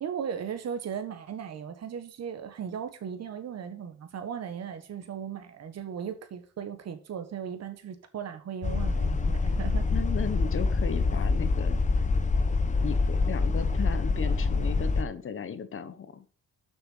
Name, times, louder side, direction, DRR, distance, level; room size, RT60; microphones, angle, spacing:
voice 1, 0.0-9.9, right 8 dB, 55° right, 1.5 m, -37 dB
sound 1, 8.6-15.0, left 3 dB, 25° left, 0.8 m, -26 dB
voice 2, 9.9-11.8 12.8-16.2, left 6 dB, 45° left, 1.1 m, -36 dB
6.7 x 6.1 x 5.6 m
cardioid pair, 90°, 30 cm